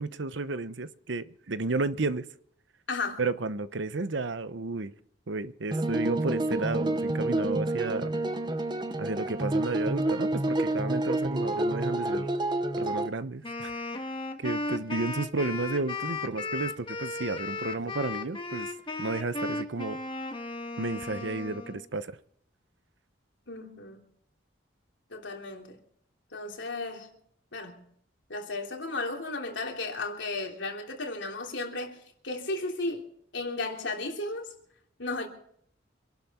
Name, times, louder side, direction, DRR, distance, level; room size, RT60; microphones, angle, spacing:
voice 1, 0.0-2.3 3.2-4.9 5.3-8.1 9.0-12.3 12.8-13.7 14.4-18.7 19.0-20.0 20.8-22.2, right 3 dB, 75° right, 0.9 m, -32 dB
voice 2, 2.9-3.2 23.5-24.0 25.1-25.8 26.3-27.1 27.5-27.8 28.3-33.1 33.3-34.5 35.0-35.3, left 2 dB, 75° left, 3.2 m, -34 dB
sound 1, 5.7-13.1, right 1 dB, 25° right, 0.8 m, -29 dB
Wind instrument woodwind instrument, 13.4-21.8, left 3 dB, 25° left, 1.4 m, -35 dB
26.0 x 11.5 x 4.3 m
head